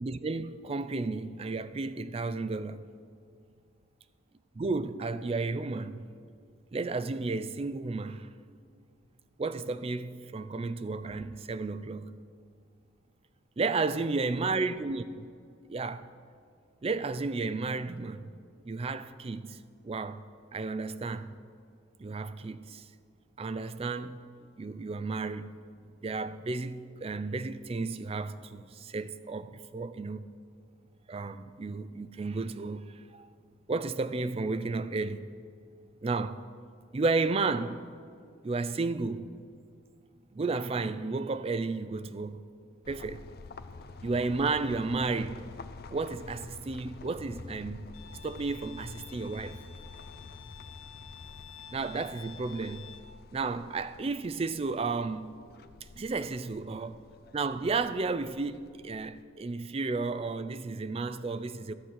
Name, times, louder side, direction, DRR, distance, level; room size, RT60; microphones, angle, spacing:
voice 1, 0.0-2.8 4.6-6.0 6.7-8.3 9.4-12.1 13.6-15.3 15.7-16.1 16.8-18.3 18.7-20.2 20.5-21.4 22.0-22.9 23.4-24.2 24.6-25.5 26.0-30.3 31.1-33.3 33.7-35.3 36.0-36.4 36.9-37.8 38.4-39.3 40.3-42.4 42.9-43.2 44.0-45.5 45.9-47.9 48.2-49.6 51.7-52.9 53.3-55.3 56.0-57.0 57.3-61.7, right 3 dB, 25° right, 0.3 m, -33 dB
sound 1, 42.8-59.2, left 3 dB, 45° left, 0.4 m, -49 dB
Bowed string instrument, 47.9-53.0, left 6 dB, 70° left, 1.5 m, -50 dB
12.5 x 7.3 x 6.3 m
head